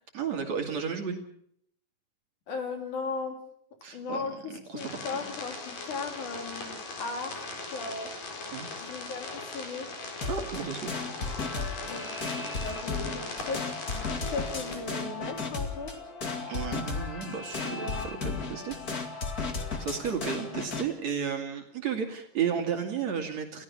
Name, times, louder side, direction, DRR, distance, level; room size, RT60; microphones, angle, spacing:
voice 1, 0.1-1.2 3.8-5.0 8.5-8.7 10.3-10.9 16.5-18.8 19.3-19.4 19.8-23.6, right 7 dB, 60° right, 4 dB, 3.2 m, -33 dB
voice 2, 2.5-3.4 3.9-8.1 8.8-9.9 11.8-15.9 17.6-18.1, left 4 dB, 65° left, 4 dB, 4.6 m, -37 dB
sound 1, 4.8-14.8, left 3 dB, 85° left, 5.7 m, -40 dB
sound 2, 10.2-20.9, left 4 dB, 30° left, 2.5 m, -35 dB
29.5 x 16.0 x 5.8 m, 0.67 s
omnidirectional pair, 3.7 m